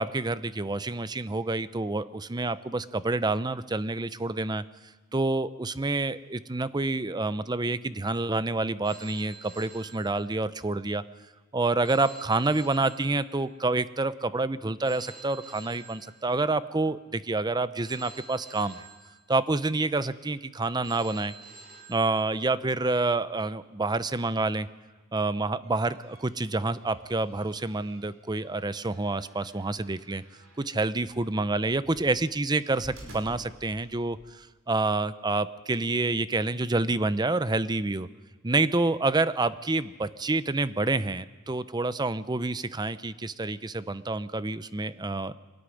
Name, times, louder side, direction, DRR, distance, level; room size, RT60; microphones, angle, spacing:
voice 1, 0.0-4.6 5.1-11.0 11.5-18.8 19.3-21.3 21.9-24.7 25.1-30.2 30.6-38.1 38.4-45.4, right 2 dB, 20° right, 15 dB, 0.6 m, -28 dB
Telephone, 8.8-10.7 11.8-13.7 14.8-16.7 17.8-19.7 20.8-22.7, right 3 dB, 45° right, 4.4 m, -49 dB
sound 1, 25.6-34.3, right 1 dB, 70° right, 5.5 m, -53 dB
24.0 x 13.0 x 9.9 m, 1.3 s
head